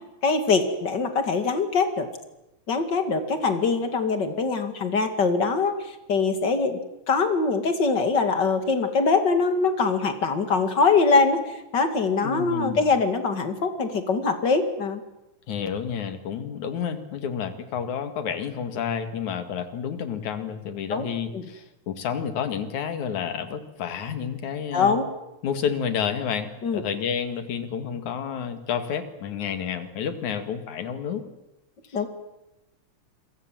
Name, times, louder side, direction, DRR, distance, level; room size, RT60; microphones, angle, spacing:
voice 1, 0.2-2.1 2.7-6.8 7.1-15.0 20.9-21.1 21.3-21.5 24.7-25.0 26.6-26.8 31.9-32.1, left 4 dB, 40° left, 7 dB, 2.6 m, -23 dB
voice 2, 12.2-12.8 15.5-25.0 25.4-31.2, left 7 dB, 85° left, 8 dB, 3.3 m, -30 dB
27.5 x 23.0 x 7.6 m, 0.93 s
omnidirectional pair, 3.3 m